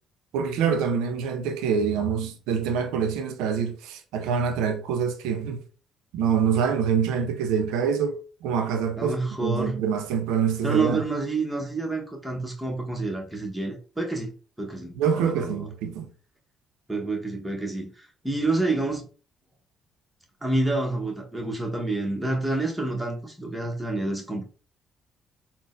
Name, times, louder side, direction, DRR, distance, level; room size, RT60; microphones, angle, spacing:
voice 1, 0.3-5.6 6.1-11.0 15.0-16.1, right 7 dB, 70° right, 0.4 m, -25 dB
voice 2, 9.0-9.8 10.6-14.3 14.6-15.7 16.9-19.1 20.4-24.4, right 2 dB, 5° right, 0.9 m, -28 dB
3.7 x 2.0 x 2.4 m
hypercardioid pair, 50°, 0 cm